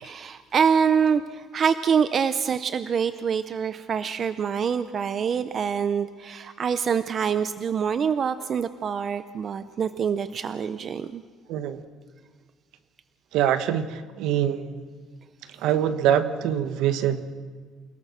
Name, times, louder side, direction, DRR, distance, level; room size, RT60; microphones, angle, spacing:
voice 1, 0.0-11.2, right 7 dB, 35° right, 12 dB, 0.6 m, -25 dB
voice 2, 11.5-11.8 13.3-14.9 15.6-17.3, right 10 dB, 90° right, 11 dB, 1.4 m, -24 dB
28.5 x 18.0 x 6.3 m, 1.5 s
cardioid pair, 170°, 0 cm